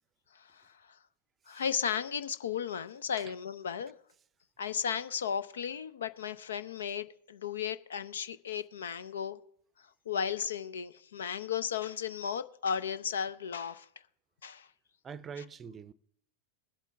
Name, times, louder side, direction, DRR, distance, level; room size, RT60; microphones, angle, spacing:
voice 1, 0.3-1.0 1.5-3.9 4.6-9.4 10.1-13.9 14.4-14.7, left 7 dB, 65° left, 0.6 m, -35 dB
voice 2, 15.0-15.9, right 6 dB, 25° right, 0.6 m, -44 dB
21.0 x 8.3 x 3.4 m
figure-of-eight pair, 90°, 0 cm